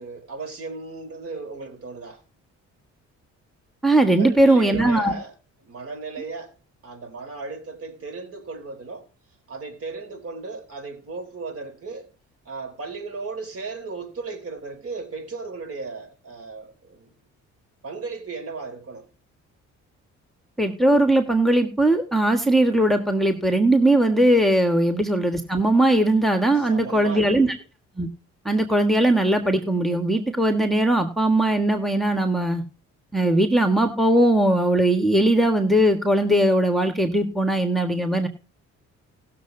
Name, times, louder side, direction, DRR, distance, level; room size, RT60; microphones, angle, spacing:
voice 1, 0.0-2.2 4.1-5.4 5.6-6.5 6.8-9.1 9.5-12.1 12.4-17.1 17.8-19.1 24.8-24.9 26.5-27.5, right 4 dB, 50° right, 3.9 m, -36 dB
voice 2, 3.8-5.1 20.6-27.5 28.0-28.1 28.4-32.6 33.1-38.3, right 1 dB, ahead, 1.6 m, -19 dB
19.0 x 7.0 x 2.7 m
cardioid pair, 90°, 30 cm